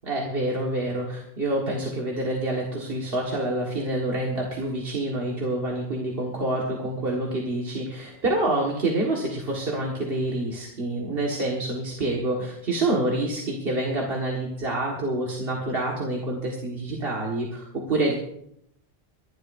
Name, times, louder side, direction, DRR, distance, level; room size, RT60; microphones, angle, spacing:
voice 1, 0.0-18.1, right 1 dB, 65° right, -2 dB, 1.9 m, -27 dB
28.5 x 11.5 x 2.6 m, 0.76 s
omnidirectional pair, 1.0 m